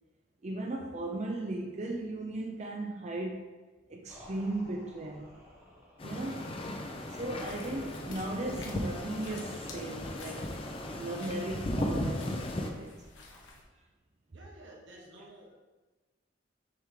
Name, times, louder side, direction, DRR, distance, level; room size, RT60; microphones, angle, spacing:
voice 1, 0.4-3.5 3.9-5.4 6.0-6.5 7.1-10.5 11.0-13.0 15.2-15.3, right 2 dB, 35° right, 0.5 m, -37 dB
sound 1, 4.1-11.5, equal, 15° right, 1.0 m, -54 dB
sound 2, 6.0-12.7, left 1 dB, 30° left, 0.6 m, -36 dB
sound 3, 7.4-13.6, left 3 dB, 80° left, 1.1 m, -51 dB
voice 2, 14.3-15.5, right 1 dB, 80° right, 1.3 m, -52 dB
6.5 x 3.5 x 4.8 m
head